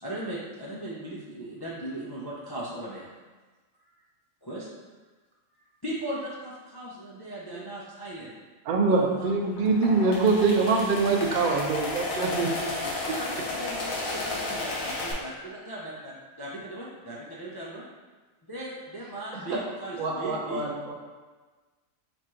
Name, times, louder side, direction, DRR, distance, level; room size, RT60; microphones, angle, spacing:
voice 1, 0.0-3.1 4.4-4.7 5.6-8.3 8.9-9.3 13.1-17.8 18.5-20.6, right 1 dB, 35° left, -7 dB, 0.3 m, -38 dB
voice 2, 8.7-12.5, right 3 dB, 55° right, 2 dB, 0.6 m, -23 dB
sound 1, 9.5-15.1, left 2 dB, 85° left, 1.2 m, -33 dB
voice 3, 20.0-20.9, right 2 dB, 85° right, -2 dB, 1.3 m, -31 dB
4.2 x 2.5 x 4.3 m, 1.3 s
omnidirectional pair, 1.4 m